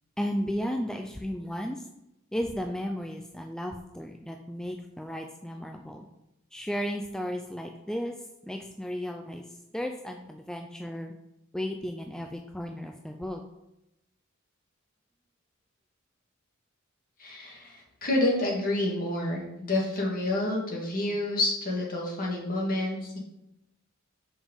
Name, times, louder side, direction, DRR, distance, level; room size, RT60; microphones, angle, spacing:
voice 1, 0.2-1.9 2.3-6.1 6.5-8.1 8.4-9.4 9.7-11.1 11.5-13.4, equal, 5° left, 3 dB, 0.3 m, -34 dB
voice 2, 17.2-23.2, left 1 dB, 45° left, -2 dB, 1.8 m, -29 dB
5.3 x 5.1 x 5.0 m, 0.89 s
head